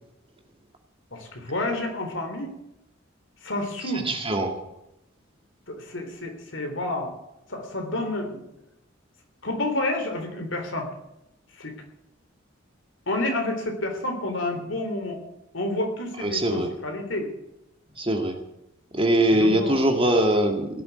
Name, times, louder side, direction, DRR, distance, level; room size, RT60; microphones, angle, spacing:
voice 1, 1.1-2.5 3.4-4.1 5.7-7.1 7.5-8.4 9.4-10.9 11.6-11.7 13.1-15.2 15.5-17.3 19.3-19.8, left 1 dB, 70° left, 4 dB, 3.6 m, -29 dB
voice 2, 4.1-4.5 16.2-16.7 18.0-18.4 19.0-20.7, right 1 dB, 30° right, 4 dB, 2.2 m, -22 dB
17.5 x 7.8 x 9.5 m, 0.85 s
head